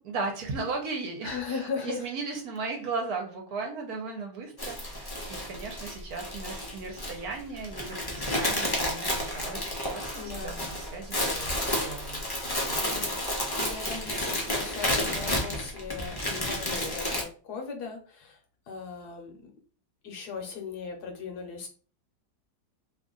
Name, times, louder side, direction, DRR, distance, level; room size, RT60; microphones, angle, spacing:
voice 1, 0.0-13.0, right 4 dB, 65° right, 2 dB, 1.3 m, -37 dB
voice 2, 1.2-2.0 10.2-10.6 12.8-13.2 13.6-18.4 18.7-19.5 20.0-21.7, left 5 dB, 70° left, 3 dB, 1.2 m, -38 dB
sound 1, 4.6-17.2, left 1 dB, 30° left, 0.4 m, -31 dB
3.0 x 2.5 x 3.7 m, 0.40 s
omnidirectional pair, 1.9 m